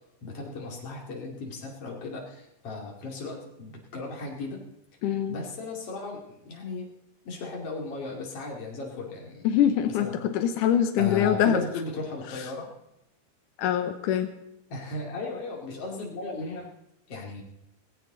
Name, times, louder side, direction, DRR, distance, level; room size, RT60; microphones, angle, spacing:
voice 1, 0.2-4.6 5.1-6.9 7.3-9.5 10.0-10.1 11.0-12.7 14.7-16.7 17.1-17.4, left 3 dB, 50° left, 0 dB, 3.5 m, -36 dB
voice 2, 5.0-5.4 9.4-11.6 13.6-14.3, left 9 dB, 90° left, 7 dB, 2.5 m, -24 dB
18.0 x 16.0 x 3.9 m, 0.84 s
omnidirectional pair, 3.5 m